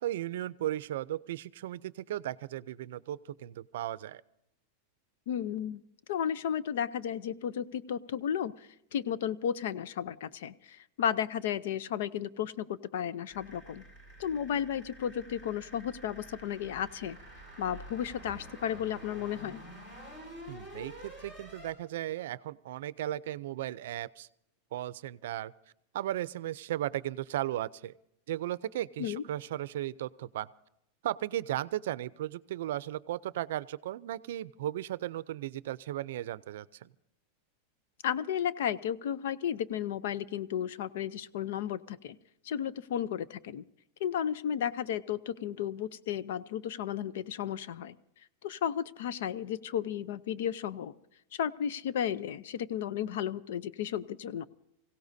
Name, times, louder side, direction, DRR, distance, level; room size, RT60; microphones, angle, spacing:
voice 1, 0.0-4.2 20.5-24.3 24.7-25.5 25.9-27.9 28.3-30.5 31.0-36.9, right 13 dB, 70° right, 18 dB, 0.5 m, -36 dB
voice 2, 5.3-5.8 6.1-13.8 14.2-17.2 17.6-19.6 29.0-29.2 38.0-42.2 42.4-43.6 44.0-48.0 48.4-50.9 51.3-54.5, left 9 dB, 65° left, 17 dB, 0.6 m, -33 dB
sound 1, 13.3-21.7, equal, 25° left, 5.4 m, -49 dB
25.0 x 16.5 x 2.7 m, 0.79 s
supercardioid pair, 170°, 0 cm